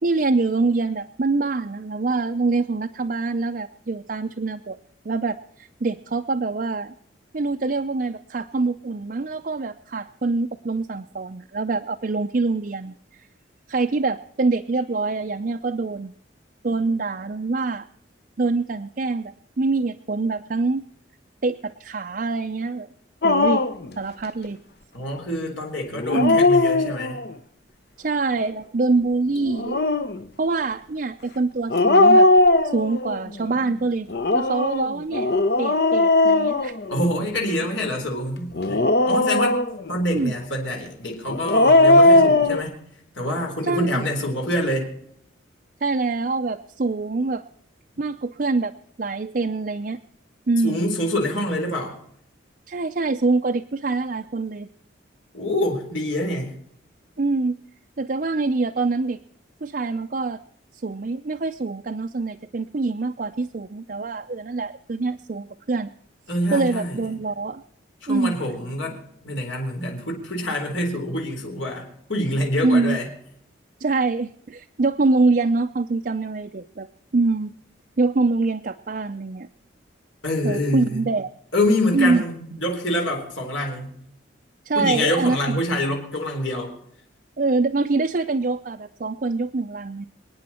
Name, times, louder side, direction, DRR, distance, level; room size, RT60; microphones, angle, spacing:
voice 1, 0.0-4.8 5.0-6.9 7.3-13.0 13.7-16.1 16.6-17.9 18.4-20.8 21.4-22.9 23.2-23.6 24.0-24.6 26.1-26.4 28.0-29.9 30.4-32.3 32.7-34.1 34.3-35.3 35.6-36.7 40.1-40.3 43.6-44.1 45.8-47.4 48.0-48.7 49.0-50.0 50.5-50.9 52.7-54.7 57.2-57.6 58.0-59.2 59.6-60.4 60.8-65.9 66.5-67.6 68.1-68.3 72.6-73.0 73.8-76.9 77.1-77.5 78.0-79.5 80.4-81.3 81.9-82.2 84.6-85.6 87.4-90.1, right 3 dB, 45° right, 5 dB, 0.5 m, -24 dB
Dog, 23.2-23.9 25.9-27.3 29.4-30.2 31.7-33.2 34.1-37.3 38.5-39.9 41.3-42.6, left 2 dB, 55° left, 0.8 m, -18 dB
voice 2, 24.9-27.2 36.9-38.8 39.1-39.6 39.9-42.7 43.2-44.9 50.6-52.0 55.3-56.5 66.3-66.9 68.0-73.1 80.2-81.1 81.5-83.9 84.8-86.7, left 1 dB, 80° left, 1 dB, 4.1 m, -26 dB
27.0 x 9.6 x 4.3 m, 0.69 s
head